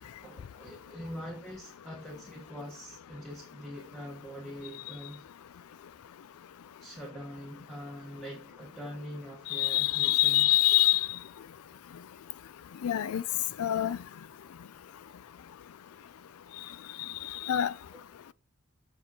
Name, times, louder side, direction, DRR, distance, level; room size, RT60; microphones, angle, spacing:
voice 1, 0.0-5.2 6.8-10.5, equal, 5° left, 1.2 m, -43 dB
voice 2, 9.5-11.1 12.8-13.2 13.6-14.0 17.4-17.7, left 14 dB, 90° left, 0.4 m, -25 dB
7.0 x 6.1 x 2.8 m
head